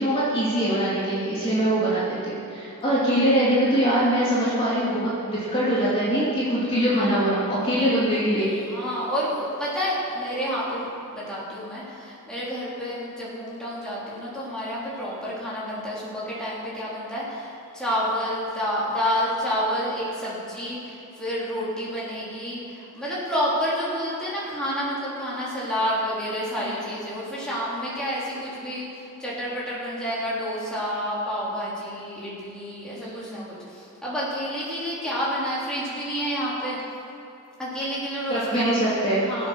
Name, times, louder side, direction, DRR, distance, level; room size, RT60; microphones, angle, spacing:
voice 1, 0.0-8.5 26.6-26.8 33.0-33.4 38.3-39.2, right 1 dB, 25° left, -9 dB, 2.8 m, -23 dB
voice 2, 8.6-36.8 37.6-39.0 39.2-39.5, equal, 5° left, -9 dB, 3.6 m, -29 dB
20.5 x 8.2 x 6.4 m, 2.8 s
head